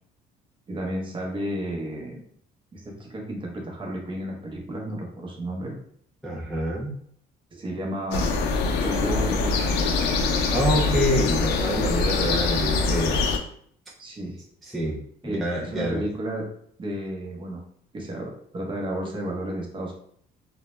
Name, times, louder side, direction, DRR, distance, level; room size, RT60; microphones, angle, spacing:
voice 1, 0.7-2.3 2.7-5.8 7.5-8.4 8.8-9.9 14.0-14.4 15.2-16.5 16.8-17.6 17.9-19.9, right 1 dB, 30° right, -1 dB, 0.7 m, -32 dB
voice 2, 6.2-6.9 10.5-13.2 14.6-16.0, equal, ahead, -5 dB, 0.4 m, -27 dB
sound 1, 8.1-13.4, left 3 dB, 85° left, 0.4 m, -24 dB
2.1 x 2.1 x 3.0 m, 0.63 s
cardioid pair, 110°, 17 cm